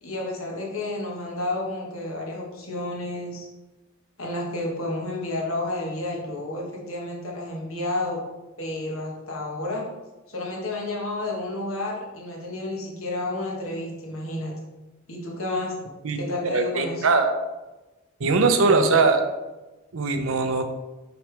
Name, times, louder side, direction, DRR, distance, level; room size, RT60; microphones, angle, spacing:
voice 1, 0.0-3.5 4.2-8.2 8.6-9.8 10.3-14.5 15.1-15.7 16.1-17.1 18.6-19.0, left 2 dB, 75° left, -2 dB, 1.5 m, -31 dB
voice 2, 16.5-17.3 18.2-19.2 19.9-20.6, right 4 dB, 70° right, 7 dB, 0.6 m, -20 dB
5.9 x 5.0 x 3.4 m, 1.1 s
head